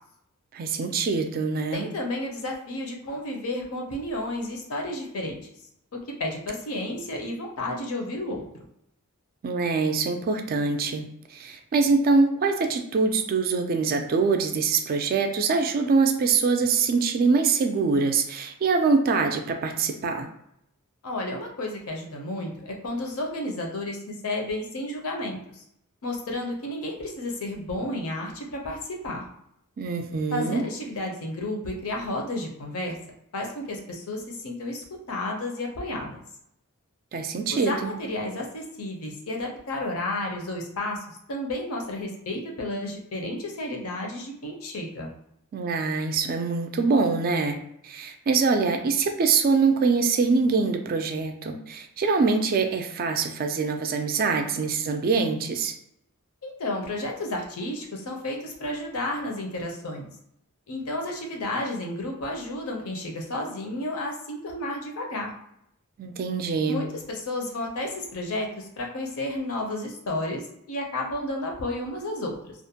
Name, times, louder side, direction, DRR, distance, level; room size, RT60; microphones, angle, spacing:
voice 1, 0.5-1.9 9.4-11.0 11.3-20.3 29.8-30.6 37.1-37.9 45.5-47.6 47.8-55.7 66.0-66.8, right 4 dB, 40° right, 6 dB, 0.3 m, -24 dB
voice 2, 1.7-5.4 5.9-8.4 21.0-25.6 26.0-29.2 30.3-33.0 33.3-36.2 37.5-45.1 56.4-60.1 60.7-65.3 66.7-72.5, left 1 dB, 65° left, 1 dB, 0.6 m, -32 dB
2.4 x 2.1 x 2.8 m, 0.76 s
head